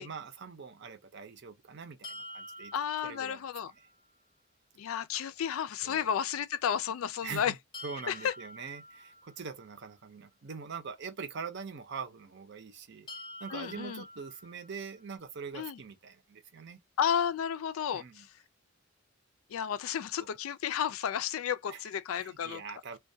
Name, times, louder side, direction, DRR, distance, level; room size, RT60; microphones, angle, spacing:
voice 1, 0.0-2.7 3.0-3.4 5.8-6.1 7.2-7.6 7.8-13.1 13.4-16.8 17.9-18.3 20.2-20.3 21.7-21.8 22.1-23.0, right 5 dB, 55° right, 0.6 m, -43 dB
sound 1, 2.0-4.0 7.7-9.8 13.1-15.1, left 1 dB, 20° left, 0.6 m, -48 dB
voice 2, 2.7-3.7 4.8-7.5 8.1-8.3 13.5-14.0 15.5-15.8 17.0-18.3 19.5-22.6, left 8 dB, 80° left, 0.4 m, -32 dB
2.2 x 2.2 x 2.6 m
head